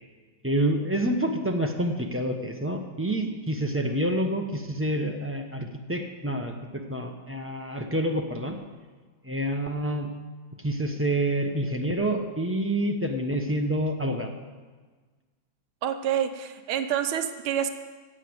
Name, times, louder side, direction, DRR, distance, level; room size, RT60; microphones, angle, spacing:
voice 1, 0.4-8.6 9.2-10.1 10.6-14.3, right 1 dB, 15° right, 2 dB, 0.4 m, -28 dB
voice 2, 15.8-17.7, right 9 dB, 90° right, 8 dB, 1.8 m, -27 dB
15.5 x 8.1 x 7.9 m, 1.4 s
omnidirectional pair, 2.2 m